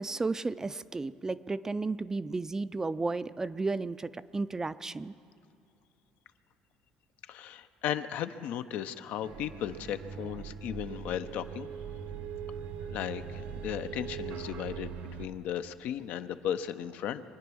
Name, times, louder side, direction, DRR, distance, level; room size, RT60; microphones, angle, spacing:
voice 1, 0.0-5.1, right 3 dB, 20° right, 15 dB, 0.4 m, -33 dB
voice 2, 7.3-11.7 12.9-17.2, left 10 dB, 70° left, 10 dB, 0.7 m, -36 dB
sound 1, 9.2-15.3, right 7 dB, 70° right, 1.0 m, -41 dB
23.5 x 9.4 x 6.3 m, 2.6 s
supercardioid pair, 95°, 3 cm